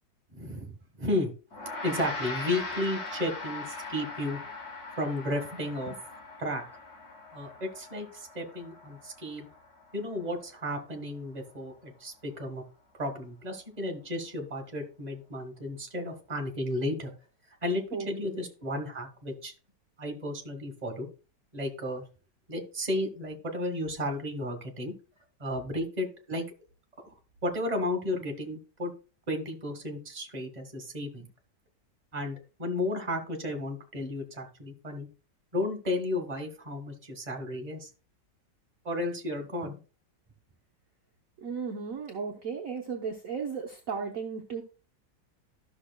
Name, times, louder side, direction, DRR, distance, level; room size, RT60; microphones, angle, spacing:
voice 1, 0.3-1.3 1.8-4.4 5.0-5.9 6.4-6.6 7.3-9.5 9.9-12.6 13.0-17.1 17.6-19.5 20.0-21.1 21.5-22.0 22.5-24.9 25.4-26.4 27.0-27.1 27.4-28.9 29.3-31.3 32.1-35.1 35.5-37.9 38.8-39.8, left 1 dB, 25° right, 3 dB, 1.5 m, -33 dB
Gong, 1.5-11.0, left 3 dB, 60° left, 1.9 m, -41 dB
voice 2, 41.4-44.6, right 6 dB, 55° right, 2 dB, 1.2 m, -35 dB
13.0 x 6.2 x 2.2 m, 0.35 s
omnidirectional pair, 1.9 m